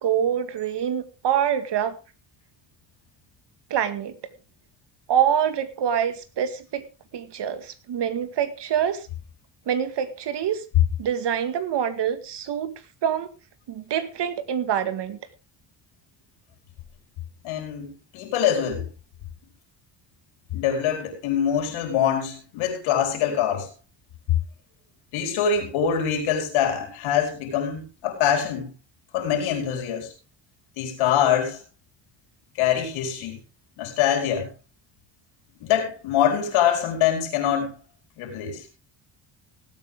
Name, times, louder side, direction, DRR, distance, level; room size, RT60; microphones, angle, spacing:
voice 1, 0.0-2.0 3.7-4.2 5.1-6.8 7.1-9.1 9.7-10.6 11.0-12.7 13.0-13.3 13.7-15.2, right 9 dB, 60° right, 10 dB, 2.1 m, -25 dB
voice 2, 17.4-18.9 20.5-23.7 25.1-28.7 29.1-30.1 30.8-31.6 32.6-33.4 33.8-34.5 35.6-37.7 38.2-38.6, left 9 dB, 85° left, 3 dB, 4.6 m, -24 dB
19.0 x 8.7 x 3.7 m, 0.32 s
supercardioid pair, 80°, 47 cm